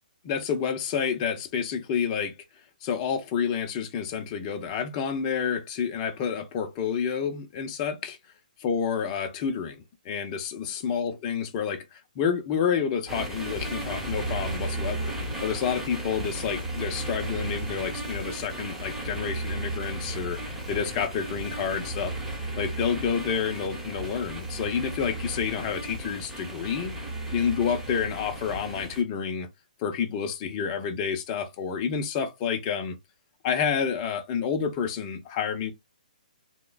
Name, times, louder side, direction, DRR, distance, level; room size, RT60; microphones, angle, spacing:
voice 1, 0.2-2.3 2.8-8.2 8.6-15.1 15.4-22.1 22.5-26.9 27.3-29.5 29.8-33.0 33.4-35.7, left 7 dB, 30° left, 0.6 m, -29 dB
sound 1, 13.1-29.0, right 2 dB, 5° right, 1.0 m, -34 dB
3.0 x 2.1 x 2.3 m
hypercardioid pair, 140°, 5 cm